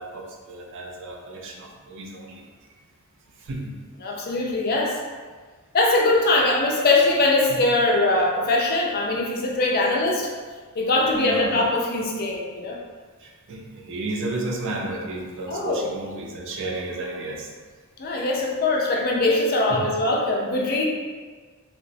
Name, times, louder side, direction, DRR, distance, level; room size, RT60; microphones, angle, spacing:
voice 1, 0.0-2.4 3.4-3.7 4.1-4.2 7.5-7.6 11.1-11.6 13.2-17.5 19.7-19.8, right 2 dB, 60° right, 0 dB, 0.4 m, -33 dB
voice 2, 4.0-5.0 5.7-10.3 10.8-12.8 15.5-15.8 18.0-20.8, left 2 dB, 45° left, -1 dB, 0.4 m, -22 dB
2.8 x 2.0 x 2.6 m, 1.5 s
head